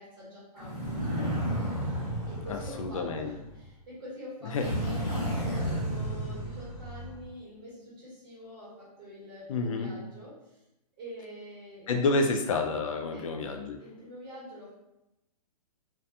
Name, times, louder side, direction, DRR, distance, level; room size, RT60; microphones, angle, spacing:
voice 1, 0.0-1.5 2.3-10.6 11.0-12.2 13.1-13.3 13.8-14.8, equal, 35° right, -10 dB, 1.4 m, -46 dB
sound 1, 0.6-3.6 4.5-7.3, equal, 35° left, 1.0 m, -32 dB
voice 2, 2.5-3.4 4.5-4.6 9.5-9.9 11.9-13.8, left 3 dB, 55° left, 4 dB, 0.4 m, -29 dB
2.5 x 2.2 x 2.6 m, 0.88 s
hypercardioid pair, 165°, 21 cm